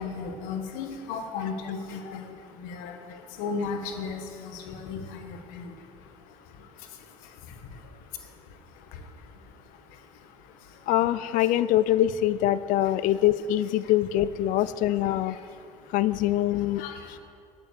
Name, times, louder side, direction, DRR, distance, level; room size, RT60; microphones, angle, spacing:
voice 1, 0.0-10.9 11.3-11.5 13.8-13.9 14.9-15.9 16.7-17.2, left 5 dB, 90° left, 5 dB, 1.2 m, -38 dB
voice 2, 10.9-15.3 15.9-16.8, left 13 dB, 75° left, 17 dB, 0.4 m, -24 dB
10.5 x 8.9 x 6.5 m, 2.3 s
cardioid pair, 100°, 14 cm